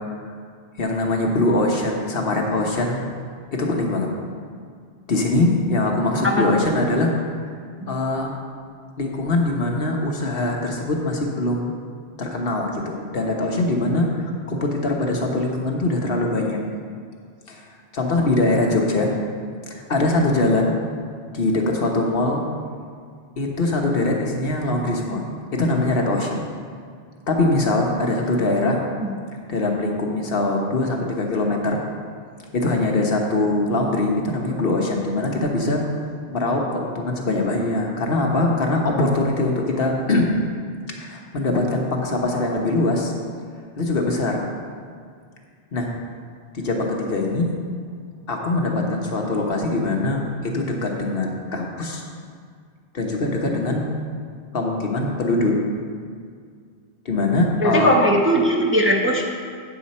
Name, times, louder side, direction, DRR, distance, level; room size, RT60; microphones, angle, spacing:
voice 1, 0.8-3.1 3.6-4.1 5.1-7.1 7.9-8.3 9.0-11.7 12.2-16.6 17.5-17.6 17.9-19.1 19.7-20.8 21.3-22.5 23.4-25.2 25.5-26.4 27.3-28.8 29.5-31.8 32.5-35.8 36.3-40.3 41.0-43.1 43.8-44.5 45.7-45.9 46.5-47.6 48.3-52.0 52.9-53.9 54.5-55.6 57.0-57.9, left 2 dB, 60° left, 0 dB, 1.2 m, -22 dB
voice 2, 6.2-6.6 7.8-7.9 29.0-29.1 57.6-59.2, equal, 15° right, -1 dB, 0.7 m, -19 dB
8.7 x 7.2 x 4.2 m, 2.1 s
omnidirectional pair, 1.1 m